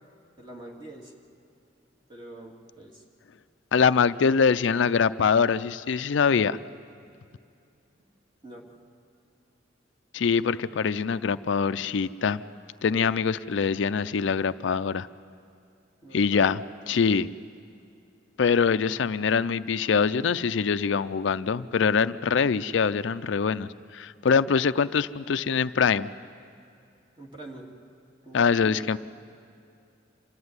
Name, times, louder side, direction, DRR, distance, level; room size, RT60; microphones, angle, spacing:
voice 1, 0.4-1.1 2.1-3.0 8.4-8.7 16.0-16.5 27.2-27.7 28.2-28.8, right 2 dB, 25° right, -1 dB, 2.7 m, -44 dB
voice 2, 3.7-6.6 10.1-12.4 12.8-15.1 16.1-16.6 16.9-17.3 18.4-23.7 23.9-26.1 28.3-29.0, left 6 dB, 70° left, 13 dB, 0.4 m, -23 dB
26.5 x 13.5 x 9.6 m, 2.5 s
head